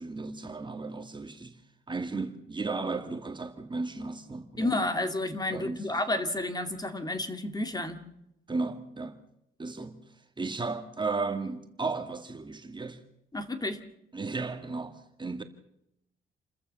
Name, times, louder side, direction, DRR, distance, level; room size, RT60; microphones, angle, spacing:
voice 1, 0.0-1.6 1.9-4.8 5.5-6.0 8.5-9.2 9.6-10.0 10.4-13.0 14.1-15.4, right 3 dB, 25° right, 1.8 m, -34 dB
voice 2, 4.6-8.0 13.3-13.8, left 2 dB, 20° left, 2.4 m, -31 dB
28.5 x 14.0 x 6.9 m
cardioid pair, 90°, 20 cm